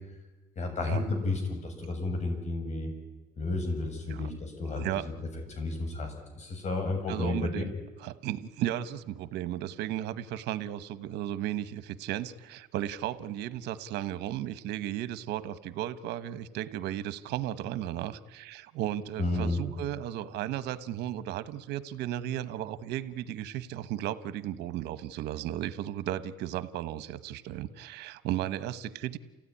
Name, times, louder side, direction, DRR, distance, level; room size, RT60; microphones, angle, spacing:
voice 1, 0.6-2.9 3.4-4.8 5.5-7.7 19.2-19.6, left 2 dB, 40° left, 4 dB, 7.1 m, -32 dB
voice 2, 4.8-5.1 7.1-7.7 8.0-29.2, right 12 dB, 85° right, 13 dB, 1.2 m, -35 dB
28.5 x 16.0 x 9.9 m, 1.2 s
cardioid pair, 110°, 17 cm